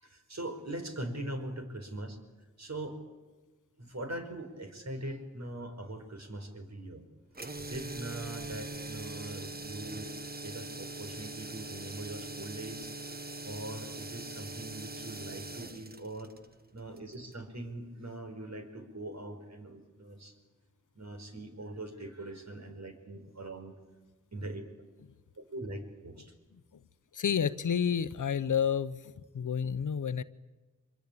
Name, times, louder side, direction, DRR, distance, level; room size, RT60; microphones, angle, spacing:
voice 1, 0.0-2.2 2.6-3.0 3.8-7.0 7.6-10.1 10.4-12.9 13.4-16.3 16.7-20.3 21.0-23.7 24.3-24.6 25.4-26.3, right 1 dB, 60° right, 5 dB, 5.1 m, -41 dB
sound 1, 7.3-17.4, right 2 dB, 30° right, 1.4 m, -42 dB
voice 2, 27.1-29.0 29.3-30.2, left 7 dB, 90° left, 14 dB, 0.9 m, -29 dB
25.0 x 22.5 x 8.7 m, 1.2 s
cardioid pair, 40°, 30 cm